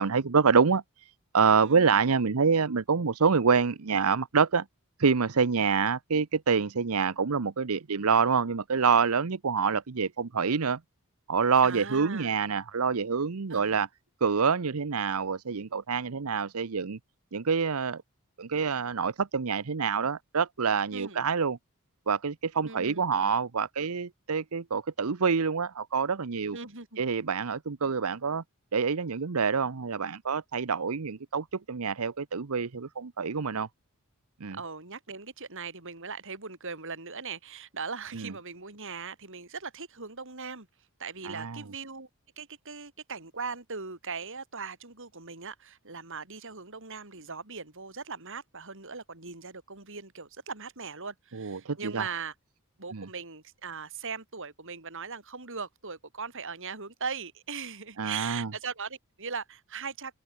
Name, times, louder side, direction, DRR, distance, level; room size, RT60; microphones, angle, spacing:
voice 1, 0.0-4.6 5.0-10.8 11.3-13.9 14.2-17.0 17.3-18.0 18.4-21.6 22.1-26.6 27.0-28.4 28.7-33.7 34.4-34.6 38.1-38.3 41.2-41.6 51.3-52.0 52.9-53.1 58.0-58.5, right 5 dB, 80° right, 0.8 m, -26 dB
voice 2, 1.6-2.0 11.6-12.3 13.5-13.7 20.9-21.2 22.6-23.0 26.5-27.0 34.5-40.7 41.0-42.1 42.4-52.3 52.8-60.1, right 5 dB, 60° right, 5.1 m, -39 dB
open air
head